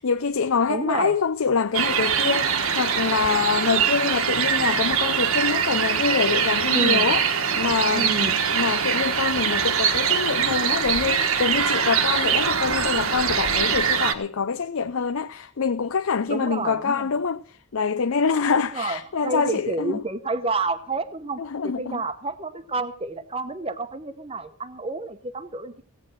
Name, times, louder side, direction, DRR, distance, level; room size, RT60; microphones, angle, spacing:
voice 1, 0.0-20.0 21.4-22.0, left 5 dB, 70° left, 0.6 m, -25 dB
voice 2, 0.7-1.1 6.7-7.1 7.9-8.4 16.3-17.1 18.5-25.8, right 3 dB, 25° right, 0.9 m, -29 dB
sound 1, 1.7-14.1, right 7 dB, 75° right, 1.5 m, -23 dB
17.0 x 9.1 x 6.3 m
head